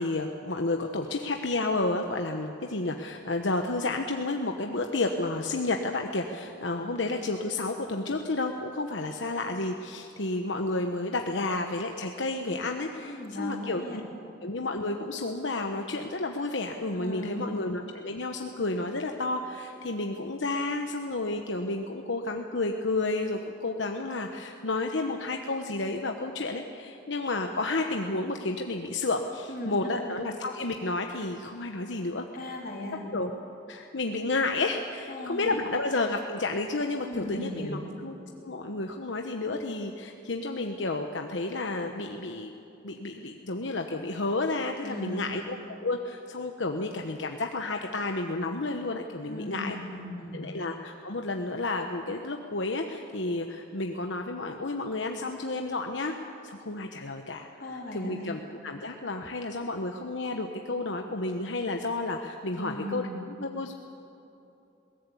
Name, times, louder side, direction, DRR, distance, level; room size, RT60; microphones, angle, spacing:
voice 1, 0.0-14.0 14.4-32.3 33.1-33.3 33.7-38.2 38.4-42.5 42.8-49.8 50.3-56.1 56.4-63.7, left 2 dB, 80° left, 4 dB, 1.1 m, -31 dB
voice 2, 13.1-14.0 16.9-17.5 29.5-30.1 32.3-33.1 35.1-35.6 37.1-37.9 44.8-45.3 49.3-50.4 57.6-58.4 62.6-63.2, left 1 dB, 50° left, -1 dB, 3.9 m, -37 dB
21.0 x 18.0 x 8.4 m, 2.9 s
head